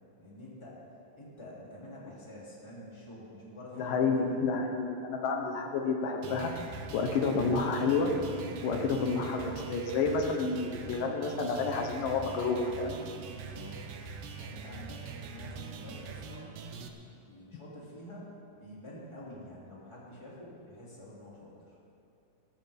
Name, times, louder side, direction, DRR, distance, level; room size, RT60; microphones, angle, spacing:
voice 1, 0.2-0.8 1.2-4.4 8.3-8.7 13.3-13.8 14.4-16.6 16.9-21.7, left 1 dB, 10° left, -6 dB, 2.7 m, -48 dB
voice 2, 3.8-6.5 6.9-8.1 8.6-12.9, left 4 dB, 80° left, 3 dB, 2.7 m, -30 dB
sound 1, 6.2-16.9, right 5 dB, 75° right, 1.4 m, -43 dB
19.0 x 14.0 x 3.6 m, 2.6 s
omnidirectional pair, 3.8 m